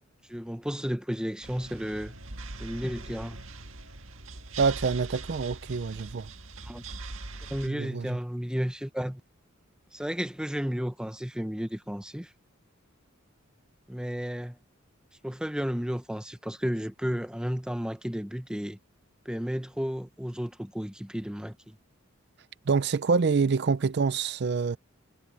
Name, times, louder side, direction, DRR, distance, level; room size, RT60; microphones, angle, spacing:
voice 1, 0.3-2.1 2.6-3.4 6.6-6.8 7.5-9.2 9.9-12.3 13.9-14.6 15.2-18.8 19.2-21.8, equal, 5° right, 0.9 m, -33 dB
sound 1, 1.4-7.7, right 3 dB, 70° right, 1.7 m, -42 dB
voice 2, 4.6-6.3 7.7-8.1 22.7-24.8, right 5 dB, 50° right, 0.4 m, -26 dB
head